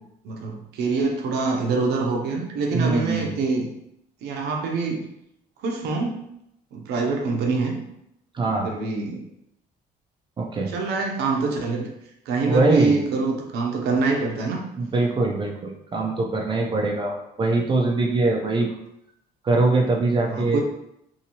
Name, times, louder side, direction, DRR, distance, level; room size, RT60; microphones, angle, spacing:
voice 1, 0.2-3.7 4.2-5.1 5.6-6.2 6.7-7.8 8.6-9.2 10.7-11.9 12.3-14.7 20.3-20.6, right 4 dB, 75° right, 1 dB, 0.7 m, -25 dB
voice 2, 2.7-3.3 8.3-8.7 10.4-10.7 12.5-13.0 14.8-18.7 19.4-20.6, right 3 dB, 30° right, 1 dB, 0.5 m, -22 dB
2.7 x 2.7 x 2.9 m, 0.79 s
cardioid pair, 110°, 17 cm